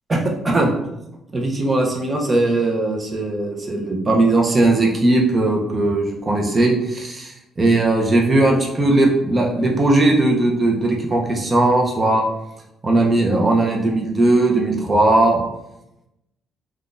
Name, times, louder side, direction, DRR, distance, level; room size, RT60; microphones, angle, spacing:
voice 1, 1.3-12.2 12.8-15.4, right 2 dB, 30° right, 0 dB, 0.7 m, -18 dB
3.5 x 2.3 x 2.5 m, 0.87 s
cardioid pair, 90°, 0 cm